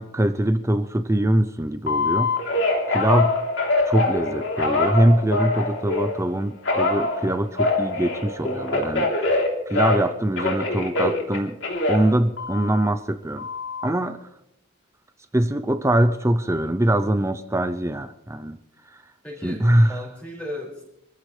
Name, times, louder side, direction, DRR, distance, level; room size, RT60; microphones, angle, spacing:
voice 1, 0.0-2.6 2.9-3.4 3.9-9.1 9.7-11.6 11.9-13.5 13.8-14.2 15.3-18.6 19.4-19.9, right 1 dB, 15° right, 10 dB, 0.6 m, -22 dB
Telephone, 1.9-6.2 6.6-10.1 10.4-12.9 13.4-13.9, left 2 dB, 65° left, 3.3 m, -24 dB
voice 2, 19.2-20.8, left 1 dB, 5° left, -3 dB, 5.6 m, -36 dB
26.5 x 15.0 x 3.3 m, 0.80 s
head